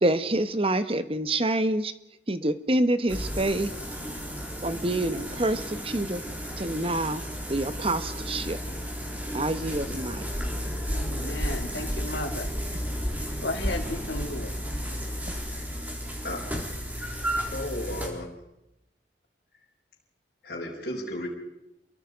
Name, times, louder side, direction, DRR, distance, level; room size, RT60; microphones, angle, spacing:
voice 1, 0.0-1.9 2.3-3.7 4.6-6.2 6.6-8.6 9.3-10.3, right 1 dB, 30° right, 11 dB, 1.1 m, -27 dB
sound 1, 3.1-18.1, equal, 10° right, 3.8 m, -33 dB
voice 2, 10.9-12.5 13.4-14.5, left 2 dB, 80° left, 3 dB, 3.1 m, -34 dB
voice 3, 16.2-16.7 17.5-18.3 20.4-21.3, left 1 dB, 55° left, -4 dB, 5.1 m, -34 dB
28.5 x 23.0 x 5.2 m, 0.90 s
head